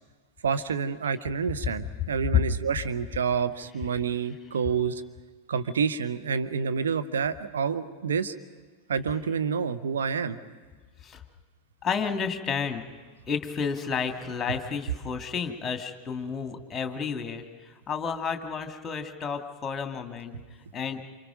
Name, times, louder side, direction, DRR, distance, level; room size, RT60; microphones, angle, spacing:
voice 1, 0.4-5.0 5.5-8.3 8.9-10.4, right 6 dB, 65° right, 10 dB, 1.3 m, -28 dB
voice 2, 11.8-12.9 13.3-20.3 20.7-21.0, left 6 dB, 20° left, 7 dB, 2.3 m, -31 dB
28.5 x 26.5 x 5.2 m, 1.4 s
figure-of-eight pair, 90°, 0 cm